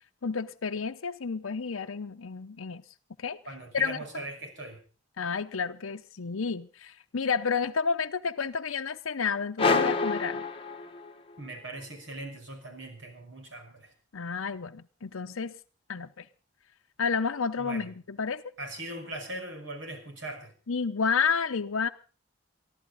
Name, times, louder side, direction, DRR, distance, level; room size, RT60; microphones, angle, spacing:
voice 1, 0.2-2.8 3.2-3.4 3.7-4.0 5.2-10.4 14.1-15.5 15.9-16.1 17.0-18.4 20.7-21.9, left 5 dB, 90° left, 0.7 m, -30 dB
voice 2, 3.5-4.8 11.4-13.9 17.6-17.9 18.6-20.5, right 1 dB, 60° right, 5.7 m, -40 dB
sound 1, 9.6-11.3, left 4 dB, 25° left, 1.2 m, -27 dB
23.5 x 14.5 x 4.0 m
head